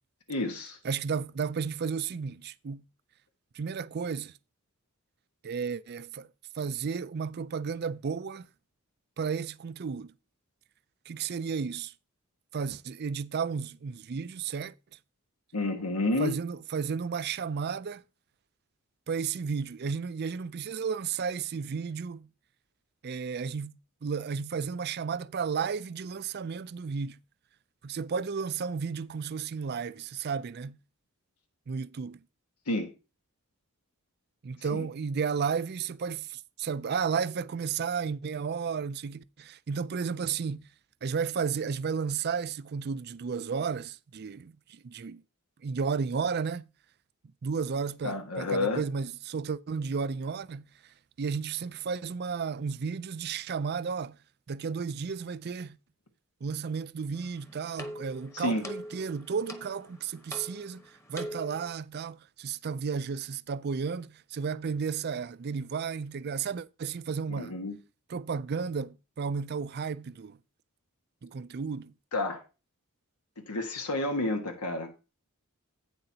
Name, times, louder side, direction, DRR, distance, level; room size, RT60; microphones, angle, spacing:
voice 1, 0.3-0.8 15.5-16.4 32.7-32.9 34.7-34.9 48.0-48.8 58.3-58.6 67.3-67.8 72.1-72.4 73.5-74.9, left 2 dB, 90° left, 1.5 m, -30 dB
voice 2, 0.8-2.8 3.5-4.3 5.4-6.3 6.6-8.5 9.2-10.1 11.1-11.9 12.5-14.7 16.2-18.0 19.1-22.3 23.0-23.7 24.0-27.2 27.8-30.8 31.7-32.2 34.4-40.7 41.0-45.2 45.6-46.7 47.4-50.6 51.2-54.1 54.5-55.8 56.4-60.8 61.1-67.5 68.1-70.4 71.2-71.9, right 6 dB, 45° right, 0.4 m, -33 dB
sound 1, 57.1-61.7, equal, 10° left, 1.1 m, -43 dB
11.5 x 9.0 x 2.8 m
head